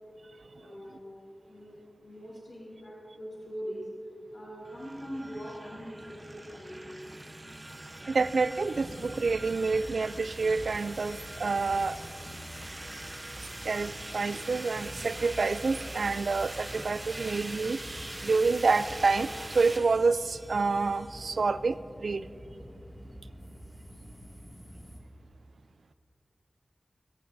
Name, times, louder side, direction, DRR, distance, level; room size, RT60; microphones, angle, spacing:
voice 1, 0.6-1.1 1.5-1.7 2.0-7.0, equal, 50° left, -6 dB, 3.5 m, -42 dB
sound 1, 4.6-21.4, right 1 dB, 30° right, 0.8 m, -43 dB
sound 2, 8.1-25.0, equal, 30° left, 2.2 m, -47 dB
voice 2, 8.1-12.0 13.4-22.3, right 4 dB, 85° right, 15 dB, 0.3 m, -28 dB
21.0 x 14.5 x 2.7 m, 2.7 s
wide cardioid pair, 65°, 0 cm